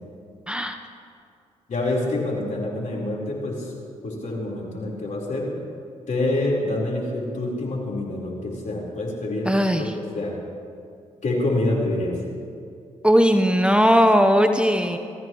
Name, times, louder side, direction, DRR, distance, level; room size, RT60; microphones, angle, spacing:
voice 1, 0.5-0.8 9.5-9.9 13.0-15.0, equal, 5° right, 6 dB, 1.0 m, -18 dB
voice 2, 1.7-3.7 4.0-5.5 6.1-10.4 11.2-12.1, left 2 dB, 60° left, -2 dB, 4.4 m, -26 dB
24.5 x 14.0 x 3.2 m, 2.3 s
hypercardioid pair, 45°, 15 cm